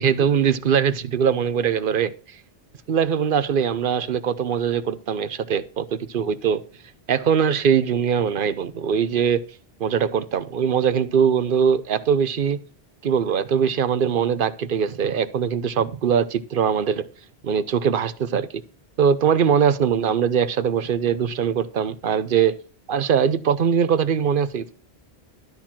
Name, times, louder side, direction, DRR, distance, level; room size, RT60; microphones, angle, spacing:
voice 1, 0.0-2.1 2.9-6.6 7.1-9.4 9.8-12.6 13.0-17.0 17.4-18.5 19.0-22.6 22.9-24.7, right 7 dB, 60° right, 0.9 m, -21 dB
12.5 x 4.5 x 7.3 m
omnidirectional pair, 1.1 m